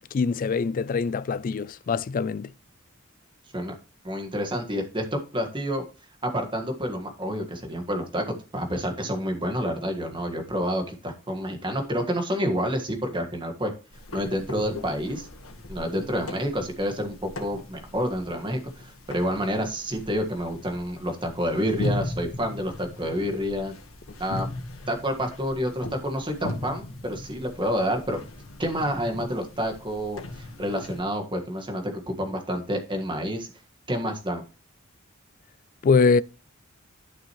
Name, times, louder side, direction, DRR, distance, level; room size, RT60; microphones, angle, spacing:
voice 1, 0.1-2.5 35.8-36.2, left 4 dB, 40° left, 0.3 m, -23 dB
voice 2, 4.0-5.0 5.3-5.8 6.2-13.7 14.1-15.3 15.7-23.7 24.2-24.5 24.9-28.2 28.6-33.5 33.9-34.4, equal, 25° right, 1.6 m, -28 dB
sound 1, 13.9-31.0, left 2 dB, 85° left, 1.8 m, -38 dB
11.5 x 6.3 x 3.1 m
head